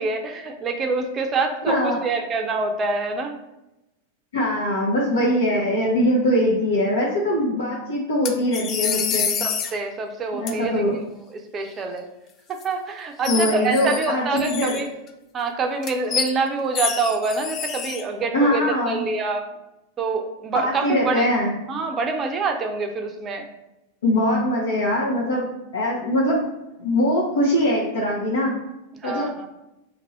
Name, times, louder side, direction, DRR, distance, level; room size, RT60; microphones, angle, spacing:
voice 1, 0.0-3.3 9.4-10.8 11.3-12.1 12.5-14.9 15.3-19.4 20.0-21.3 21.7-23.5 28.9-29.5, right 4 dB, 25° right, 4 dB, 0.5 m, -26 dB
voice 2, 1.7-2.1 4.3-9.3 10.3-10.9 13.3-14.8 18.3-19.0 20.5-21.5 24.0-25.5 25.7-26.4 26.8-28.5 29.0-29.3, equal, 65° left, -4 dB, 0.7 m, -22 dB
sound 1, 8.3-9.7 10.5-10.6 12.5-12.6 13.2-14.1 14.4-15.1 15.8-16.3 16.7-18.0, left 7 dB, 30° left, 0.3 m, -27 dB
2.9 x 2.6 x 4.1 m, 0.92 s
figure-of-eight pair, 90°, 0 cm